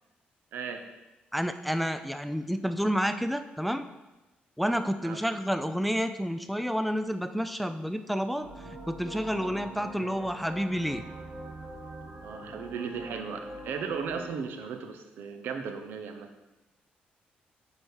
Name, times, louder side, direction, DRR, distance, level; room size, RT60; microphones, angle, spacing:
voice 1, 0.5-0.8 5.0-5.2 12.2-16.3, right 6 dB, 85° right, 6 dB, 0.8 m, -36 dB
voice 2, 1.3-3.9 4.6-8.5 8.9-11.0, equal, ahead, 9 dB, 0.3 m, -29 dB
sound 1, 8.4-14.4, right 1 dB, 40° right, 1.7 m, -44 dB
6.9 x 4.9 x 4.6 m, 1.1 s
cardioid pair, 125°, 3 cm